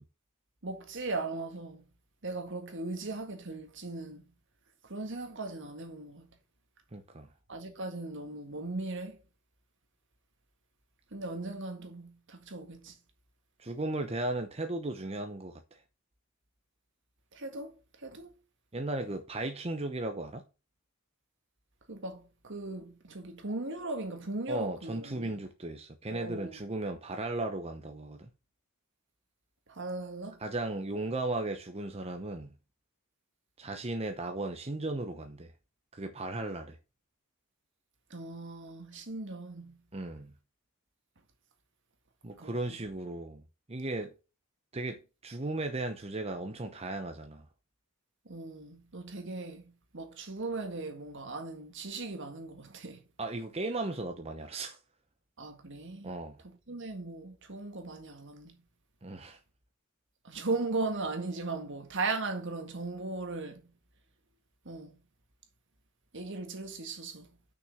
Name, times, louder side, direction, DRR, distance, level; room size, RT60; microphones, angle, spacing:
voice 1, 0.6-1.9 2.2-4.3 4.9-6.3 7.5-9.2 11.1-12.9 17.3-17.8 18.0-18.3 21.9-25.3 26.1-26.6 29.7-30.4 38.1-39.8 42.4-42.8 48.3-49.6 49.9-53.0 55.4-56.1 56.4-58.6 60.2-63.6 64.7-65.0 66.1-67.3, right 3 dB, 55° right, 1.8 m, -38 dB
voice 2, 6.9-7.3 13.6-15.6 18.7-20.4 24.5-28.3 30.4-32.5 33.6-35.5 35.9-36.8 39.9-40.3 42.2-43.4 43.7-44.1 44.7-47.4 53.2-54.8 56.0-56.4 59.0-59.4, right 2 dB, 30° right, 0.8 m, -36 dB
6.5 x 5.9 x 6.6 m
head